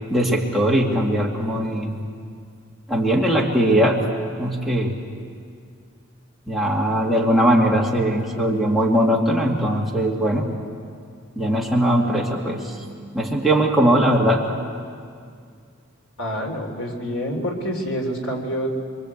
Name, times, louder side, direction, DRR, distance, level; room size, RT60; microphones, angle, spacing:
voice 1, 0.1-2.0 2.9-4.0 4.4-4.9 6.5-10.5 11.4-14.5, right 1 dB, ahead, -3 dB, 2.3 m, -20 dB
voice 2, 16.2-18.7, equal, 85° left, 2 dB, 3.5 m, -27 dB
26.0 x 23.5 x 8.3 m, 2.2 s
head